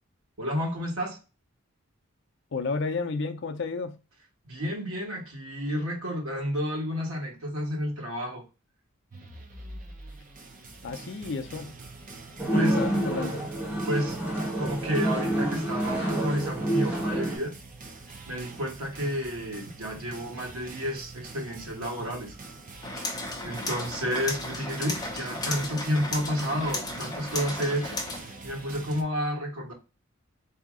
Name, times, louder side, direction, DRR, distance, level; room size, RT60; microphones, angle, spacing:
voice 1, 0.4-1.2 4.4-8.4 12.5-12.8 13.8-14.2 14.6-17.5 18.3-22.3 23.4-28.0 28.4-29.7, equal, 80° right, 1.3 m, -31 dB
voice 2, 2.5-4.0 10.8-11.7 12.4-13.4, left 4 dB, 55° left, 0.5 m, -32 dB
sound 1, 9.1-29.0, right 3 dB, 35° right, 0.6 m, -44 dB
sound 2, 12.4-17.4, right 1 dB, 5° right, 1.0 m, -28 dB
sound 3, 22.8-28.2, left 2 dB, 20° left, 0.7 m, -34 dB
4.0 x 2.8 x 3.6 m
head